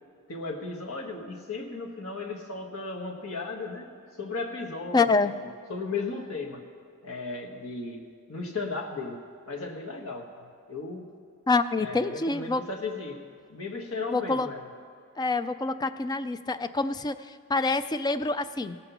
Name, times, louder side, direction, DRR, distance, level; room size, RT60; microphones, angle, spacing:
voice 1, 0.3-5.1 5.4-6.6 7.0-9.2 9.5-11.1 11.8-13.2 13.5-14.7, left 3 dB, 70° left, 1 dB, 1.5 m, -35 dB
voice 2, 4.9-5.3 11.5-12.6 14.1-14.5 15.2-18.8, left 3 dB, 20° left, 11 dB, 0.3 m, -26 dB
17.0 x 5.9 x 7.0 m, 2.3 s
head